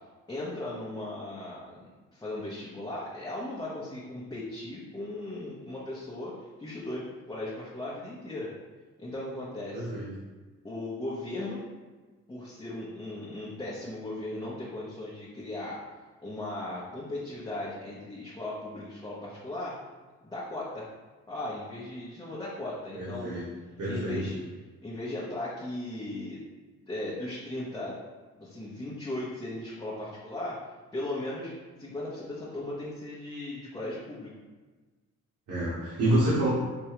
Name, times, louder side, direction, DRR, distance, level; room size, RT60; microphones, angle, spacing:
voice 1, 0.3-1.8 2.1-8.5 9.0-9.9 10.6-11.6 12.3-15.8 16.2-19.7 20.2-20.8 21.3-23.3 23.9-24.4 24.8-26.4 26.9-28.0 28.4-30.6 30.9-31.5 31.8-34.3, left 1 dB, 15° left, -8 dB, 0.7 m, -37 dB
voice 2, 9.7-10.1 22.9-23.5 23.8-24.2 35.5-36.5, right 1 dB, 75° right, -10 dB, 1.3 m, -27 dB
4.5 x 2.3 x 2.9 m, 1.3 s
cardioid pair, 90°, 30 cm